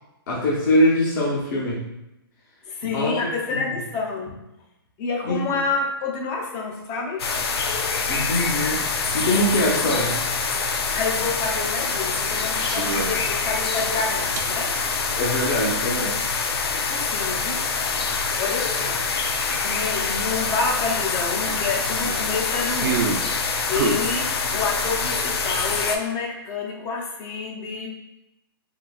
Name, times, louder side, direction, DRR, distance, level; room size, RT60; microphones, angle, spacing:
voice 1, 0.3-1.8 2.8-3.1 3.5-3.6 5.2-5.4 8.1-8.8 9.1-10.2 15.2-16.1, left 1 dB, 50° left, -6 dB, 0.9 m, -22 dB
voice 2, 2.7-4.4 5.0-7.2 10.9-14.8 16.9-17.6 18.4-19.0 19.6-23.0 23.7-27.9, left 4 dB, 25° left, 1 dB, 0.5 m, -28 dB
sound 1, 7.2-26.0, left 4 dB, 85° left, 0.4 m, -25 dB
sound 2, 12.5-13.2 13.8-14.5 16.0-16.1 18.8-18.9 19.1-19.2 19.7-19.8 21.4-23.3 23.7-25.2, right 5 dB, 50° right, 0.4 m, -28 dB
3.7 x 2.7 x 2.3 m, 0.91 s
hypercardioid pair, 155°, 13 cm